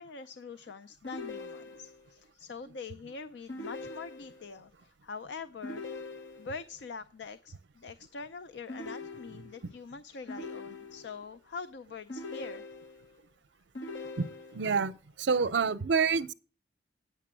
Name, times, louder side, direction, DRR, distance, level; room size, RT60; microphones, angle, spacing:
voice 1, 0.0-5.9 6.4-12.8, left 4 dB, 70° left, 0.5 m, -44 dB
sound 1, 1.0-2.1 3.5-4.5 5.6-6.7 8.7-9.7 10.3-11.2 12.1-13.1 13.7-14.8, left 2 dB, 90° left, 1.2 m, -42 dB
voice 2, 14.2-14.9 15.2-16.3, right 5 dB, 70° right, 0.5 m, -28 dB
9.2 x 6.8 x 7.3 m
head